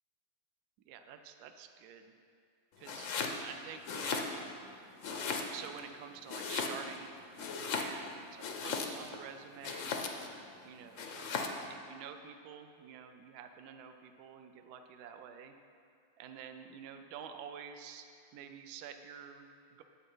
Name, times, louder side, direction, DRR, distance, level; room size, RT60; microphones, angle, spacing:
voice 1, 0.8-2.1 2.8-3.1 3.4-4.3 5.0-10.0 10.6-11.4 11.7-15.5 16.2-18.0 18.3-19.8, right 7 dB, 75° right, 6 dB, 0.9 m, -49 dB
Domestic sounds home sounds, 2.8-3.4 3.8-4.7 5.0-5.8 6.3-7.0 7.3-9.2 9.6-10.3 11.0-11.6, left 5 dB, 80° left, 0.6 m, -37 dB
8.8 x 7.5 x 5.4 m, 2.3 s
omnidirectional pair, 2.3 m